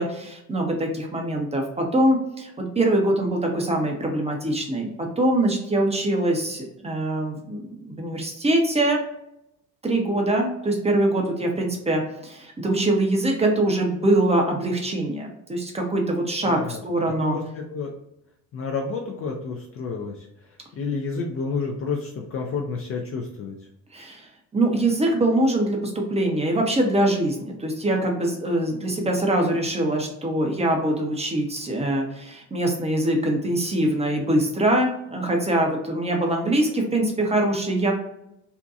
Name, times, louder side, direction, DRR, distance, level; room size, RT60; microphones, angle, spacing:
voice 1, 0.0-9.0 9.8-17.4 23.9-24.3 24.5-37.9, right 1 dB, 15° right, 1 dB, 0.6 m, -23 dB
voice 2, 16.4-16.8 17.1-17.9 18.5-20.3 20.7-23.5, left 4 dB, 30° left, 1 dB, 0.4 m, -30 dB
2.7 x 2.2 x 2.4 m, 0.82 s
hypercardioid pair, 55°, 47 cm